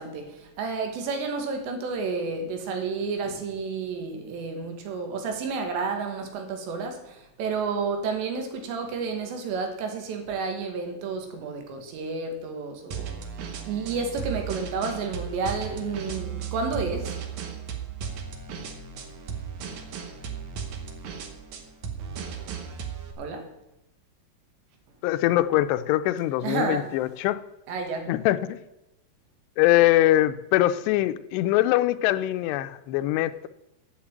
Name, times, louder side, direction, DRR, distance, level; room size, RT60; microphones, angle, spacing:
voice 1, 0.0-13.2 13.6-17.2 23.2-23.6 26.4-27.0 27.7-28.2, right 4 dB, 90° right, 3.7 m, -31 dB
sound 1, 12.9-23.1, right 6 dB, 65° right, 1.9 m, -36 dB
voice 2, 25.0-27.4 28.1-28.6 29.6-33.5, left 14 dB, 85° left, 2.7 m, -23 dB
8.5 x 7.9 x 8.6 m
omnidirectional pair, 4.9 m